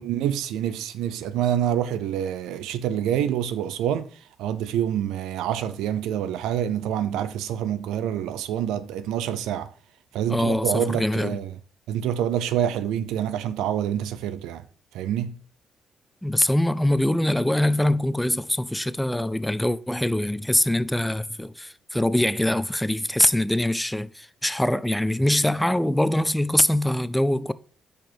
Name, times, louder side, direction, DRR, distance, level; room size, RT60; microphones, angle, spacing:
voice 1, 0.0-4.1 4.4-9.7 10.1-11.5 11.9-14.6 14.9-15.4, right 10 dB, 85° right, 0.5 m, -27 dB
voice 2, 10.3-11.4 16.2-27.5, left 1 dB, 5° left, 0.4 m, -23 dB
6.1 x 5.2 x 4.4 m
supercardioid pair, 65°, 0 cm